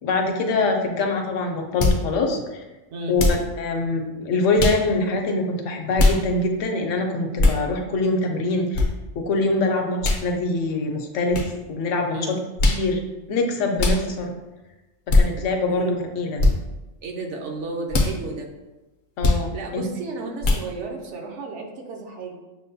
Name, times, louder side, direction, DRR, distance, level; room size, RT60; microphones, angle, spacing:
voice 1, 0.0-2.6 3.1-3.2 3.6-8.9 9.1-12.4 12.7-13.0 13.3-14.3 15.1-16.4 19.2-19.8, left 2 dB, 75° left, 3 dB, 0.9 m, -24 dB
sound 1, 1.8-2.0 3.2-3.5 4.6-4.8 6.0-6.2 7.4-7.6 8.7-8.9 10.0-10.2 11.3-11.5 12.6-12.8 13.8-14.0 15.1-15.3 16.4-16.5 17.9-18.1 19.2-19.4 20.4-20.6, left 2 dB, 55° left, 0.5 m, -19 dB
voice 2, 17.0-18.5 19.5-22.4, right 3 dB, 70° right, 1 dB, 0.8 m, -33 dB
6.3 x 2.1 x 2.6 m, 1.1 s
omnidirectional pair, 1.4 m